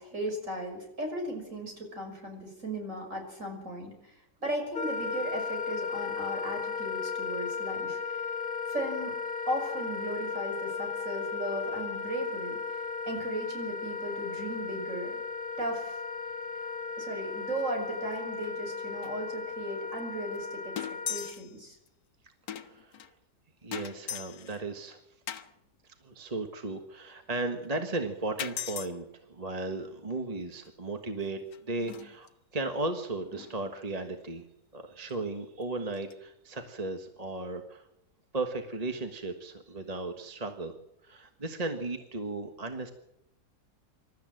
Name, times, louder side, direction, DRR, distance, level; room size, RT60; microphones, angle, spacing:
voice 1, 0.0-4.1 4.4-8.2 8.7-9.1 9.5-12.8 13.1-15.2 15.6-16.0 17.0-20.7 21.1-21.8, right 1 dB, 45° right, 3 dB, 6.1 m, -36 dB
Wind instrument woodwind instrument, 4.7-21.3, left 5 dB, 35° left, 1.2 m, -36 dB
sound 1, 17.5-17.8 18.0-18.2 18.4-18.5 19.0-19.1 20.0-20.1 20.4-20.5 20.8-21.5 21.9-22.0 22.5-23.1 23.7-24.6 25.3-25.5 27.6-27.7 28.4-28.9 30.7-30.8 31.2-32.3 33.3-33.6 35.1-35.2 35.6-35.7 35.9-36.1, left 9 dB, 80° left, 1.7 m, -39 dB
voice 2, 22.5-23.1 23.6-25.0 26.0-34.4 34.7-37.9 38.3-40.7 41.0-42.9, right 2 dB, 25° right, 5 dB, 1.4 m, -35 dB
26.5 x 13.5 x 7.7 m, 0.85 s
omnidirectional pair, 1.8 m